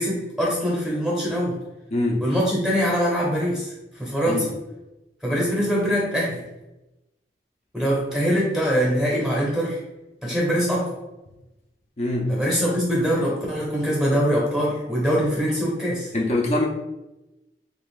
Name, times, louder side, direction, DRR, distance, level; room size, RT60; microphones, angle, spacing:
voice 1, 0.0-1.6 2.2-4.5 5.2-6.4 7.7-9.8 10.2-10.9 12.3-16.1, equal, 5° right, -5 dB, 0.8 m, -23 dB
voice 2, 1.9-2.2 4.3-4.5 12.0-12.4 16.1-16.7, left 1 dB, 35° left, -1 dB, 0.4 m, -23 dB
3.4 x 2.5 x 3.7 m, 0.97 s
head